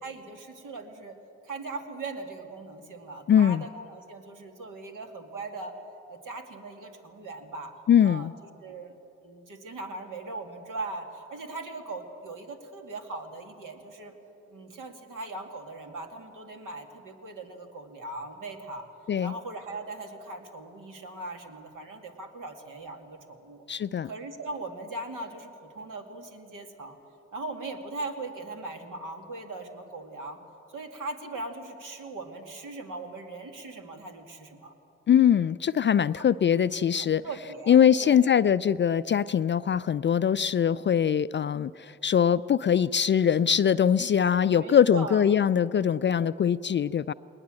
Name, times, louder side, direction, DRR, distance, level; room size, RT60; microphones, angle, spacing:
voice 1, 0.0-1.1 1.4-5.7 6.1-7.7 8.0-8.3 8.6-8.9 9.2-14.1 14.5-18.9 19.2-23.6 24.0-27.0 27.3-30.4 30.7-34.7 36.2-36.3 37.0-38.3 44.5-45.2, right 2 dB, 60° right, 4 dB, 2.4 m, -39 dB
voice 2, 3.3-3.6 7.9-8.3 19.1-19.3 23.7-24.1 35.1-37.2 37.7-47.1, left 8 dB, 35° left, 16 dB, 0.4 m, -22 dB
20.0 x 19.5 x 7.7 m, 2.9 s
hypercardioid pair, 45°, 35 cm